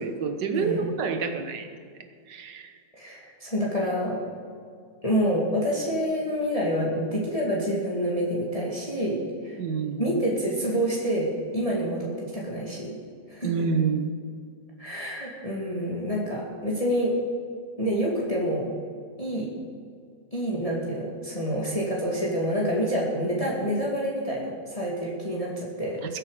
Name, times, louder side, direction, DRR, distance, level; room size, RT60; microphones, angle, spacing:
voice 1, 0.0-1.7 2.3-2.7 9.6-10.2 13.4-14.1, right 5 dB, 75° right, 7 dB, 1.8 m, -28 dB
voice 2, 0.5-0.8 3.0-4.2 5.0-9.6 9.9-13.0 13.3-13.5 14.8-17.2 17.8-18.7 19.2-19.5 20.3-26.0, equal, 20° left, -4 dB, 2.5 m, -27 dB
21.0 x 8.7 x 5.0 m, 2.2 s
omnidirectional pair, 1.9 m